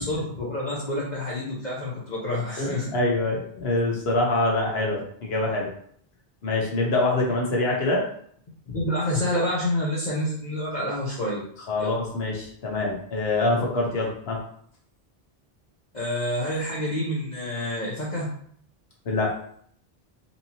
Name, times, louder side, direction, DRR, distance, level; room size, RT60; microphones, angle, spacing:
voice 1, 0.0-2.9 8.7-11.4 11.8-11.9 15.9-18.3, left 1 dB, 50° left, -6 dB, 0.8 m, -28 dB
voice 2, 2.6-5.7 6.4-8.0 8.7-8.8 11.7-14.4 19.0-19.3, left 2 dB, 75° left, -2 dB, 1.2 m, -25 dB
4.2 x 2.8 x 2.8 m, 0.63 s
omnidirectional pair, 1.0 m